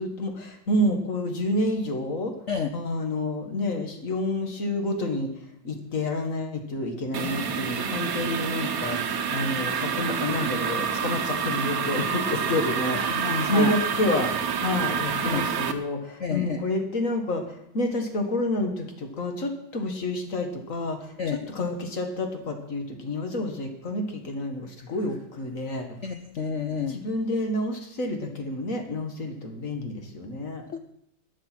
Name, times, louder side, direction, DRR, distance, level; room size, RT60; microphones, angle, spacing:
voice 1, 0.0-2.3 2.7-5.3 5.6-14.3 14.6-26.0 26.9-30.7, left 1 dB, 40° left, 5 dB, 2.1 m, -29 dB
sound 1, 7.1-15.7, right 6 dB, 50° right, 1.3 m, -28 dB
voice 2, 13.0-13.7 15.2-15.5 16.2-16.6 21.2-21.4 26.0-27.0 30.7-30.8, left 6 dB, 70° left, 7 dB, 0.7 m, -29 dB
13.5 x 10.5 x 6.1 m, 0.78 s
omnidirectional pair, 2.2 m